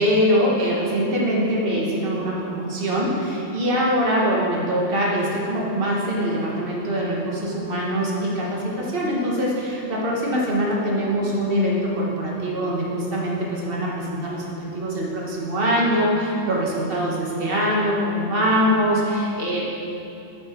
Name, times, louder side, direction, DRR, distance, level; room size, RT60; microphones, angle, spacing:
voice 1, 0.0-19.6, equal, 50° right, -4 dB, 1.6 m, -23 dB
9.0 x 6.4 x 4.4 m, 2.7 s
omnidirectional pair, 1.3 m